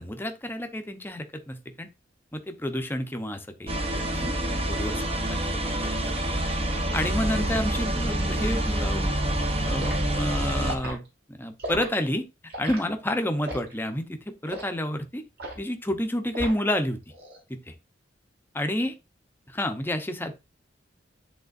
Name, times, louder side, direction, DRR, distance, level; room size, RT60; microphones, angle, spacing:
voice 1, 0.0-1.9 2.3-4.3 4.7-6.1 6.9-9.1 9.6-9.9 10.1-11.0 11.3-12.2 12.6-15.2 15.6-17.0 17.5-17.7 18.5-18.9 19.5-20.3, left 1 dB, 10° left, 0.8 m, -30 dB
sound 1, 3.7-10.8, right 1 dB, 35° right, 0.9 m, -27 dB
Liquid, 9.8-10.0 10.6-11.0 11.6-11.9 12.5-12.8 13.4-13.7 14.5-14.7 15.4-15.7 16.3-16.8 17.1-17.4, right 1 dB, 60° right, 2.9 m, -35 dB
10.5 x 3.7 x 2.5 m
head